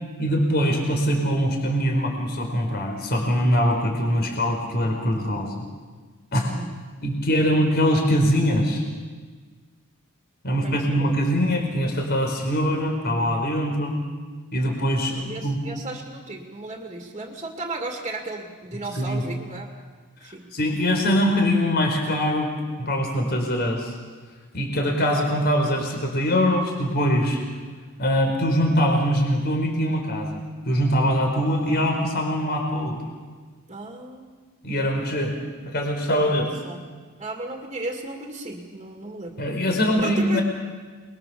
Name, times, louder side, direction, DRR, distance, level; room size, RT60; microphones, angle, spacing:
voice 1, 0.2-5.6 6.3-6.5 7.0-8.8 10.4-14.0 14.5-15.6 19.0-19.2 20.5-22.5 22.8-23.9 24.5-27.4 28.0-33.0 34.6-35.3 35.6-36.5 39.4-40.4, equal, 45° left, 2 dB, 4.6 m, -23 dB
voice 2, 6.4-6.8 7.4-7.6 10.5-11.2 15.1-19.7 20.2-20.5 33.7-34.3 36.2-39.3 40.0-40.4, right 2 dB, 25° right, 2 dB, 2.5 m, -35 dB
27.5 x 22.0 x 7.1 m, 1.5 s
head